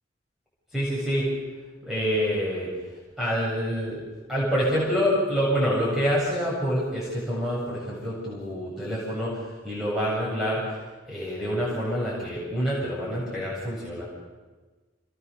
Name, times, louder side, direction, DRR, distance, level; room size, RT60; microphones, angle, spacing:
voice 1, 0.7-1.3 1.8-2.7 3.2-4.0 4.3-10.6 11.1-14.0, equal, ahead, -7 dB, 7.9 m, -27 dB
28.0 x 21.5 x 7.0 m, 1.3 s
head